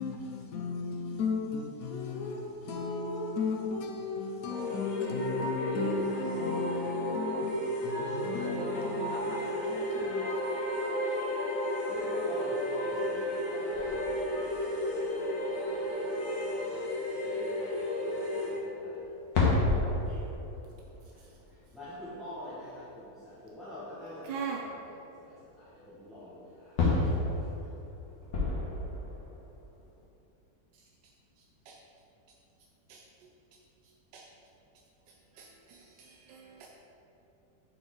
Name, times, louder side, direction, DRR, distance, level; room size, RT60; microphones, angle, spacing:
voice 1, 0.0-10.2, left 4 dB, 70° left, 3 dB, 0.9 m, -35 dB
sound 1, 4.4-18.6, equal, 55° left, 1.3 m, -33 dB
voice 2, 11.9-13.2 13.5-14.0 14.4-14.5 15.5-15.8 16.1-16.3 16.5-16.9 17.2-19.0 19.8-20.3 21.1-21.2 21.7-24.9 25.2-26.7 27.2-27.5, equal, ahead, -12 dB, 0.9 m, -46 dB
sound 2, 13.7-15.0 15.7-15.8 16.6-16.7 17.1-17.2 19.0-23.2 24.8-24.9 25.4-25.5 26.8-30.0, left 3 dB, 90° left, 1.7 m, -32 dB
voice 3, 24.2-24.6 31.7-31.8 32.9-33.3 34.1-34.3 35.3-36.7, right 6 dB, 85° right, -1 dB, 1.2 m, -41 dB
5.1 x 4.1 x 4.5 m, 2.8 s
omnidirectional pair, 1.9 m